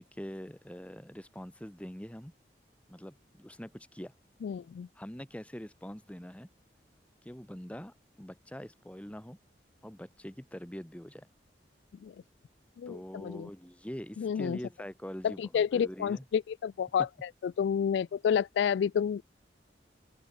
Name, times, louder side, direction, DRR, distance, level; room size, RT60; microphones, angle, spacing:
voice 1, 0.0-2.3 2.9-4.1 5.0-6.5 7.2-9.4 9.8-11.3 12.9-16.2, equal, 10° left, 1.4 m, -44 dB
voice 2, 4.4-4.9 12.0-12.1 12.8-13.5 14.2-14.6 15.2-19.2, left 7 dB, 85° left, 0.3 m, -30 dB
open air
head